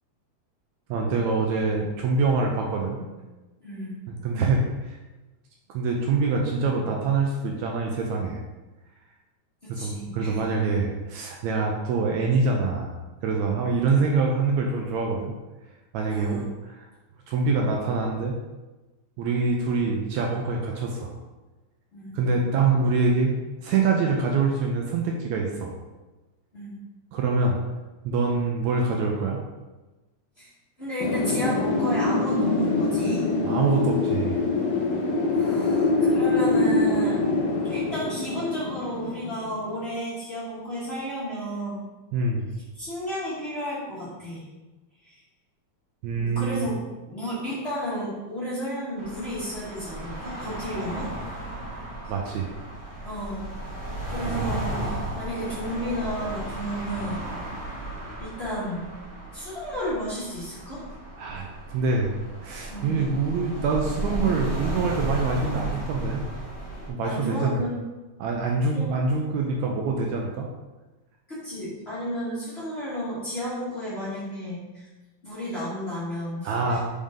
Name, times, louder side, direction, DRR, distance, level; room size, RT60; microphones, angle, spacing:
voice 1, 0.9-3.0 4.1-5.0 5.7-8.4 9.7-15.3 15.9-16.9 17.3-18.4 19.2-21.2 22.1-23.3 23.6-25.7 27.1-27.6 28.0-29.4 33.4-34.4 42.1-42.5 46.0-46.7 52.1-52.5 54.2-54.5 61.2-62.1 62.4-66.2 66.9-67.6 68.2-70.5 76.4-76.8, right 4 dB, 75° right, 0 dB, 1.8 m, -25 dB
voice 2, 3.6-3.9 9.7-10.4 16.1-16.5 21.9-22.5 26.5-26.8 30.4-30.5 30.8-33.3 35.3-37.2 37.6-41.8 42.7-44.5 45.0-45.2 46.2-46.7 47.1-51.1 53.0-53.4 54.1-57.3 58.2-58.9 59.3-60.8 62.7-63.0 67.0-67.8 68.6-68.9 71.3-74.9 75.2-76.8, equal, 25° left, -11 dB, 1.7 m, -32 dB
Wind, 31.0-39.7, left 3 dB, 70° left, 2.3 m, -24 dB
sound 1, 49.0-66.9, right 1 dB, 20° right, 1.0 m, -34 dB
5.3 x 5.2 x 3.7 m, 1.1 s
omnidirectional pair, 3.5 m